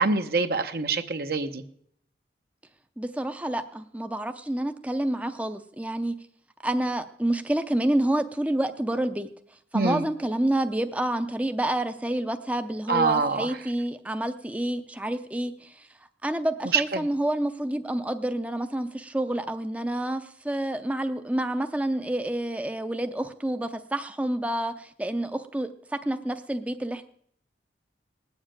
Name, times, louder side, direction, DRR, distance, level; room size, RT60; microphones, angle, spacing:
voice 1, 0.0-1.6 9.7-10.0 12.9-13.5 16.7-17.1, right 4 dB, 60° right, 8 dB, 0.8 m, -25 dB
voice 2, 3.0-6.1 6.6-9.3 9.7-15.9 16.2-27.0, right 1 dB, 10° right, 8 dB, 0.6 m, -28 dB
19.0 x 7.3 x 8.9 m, 0.68 s
head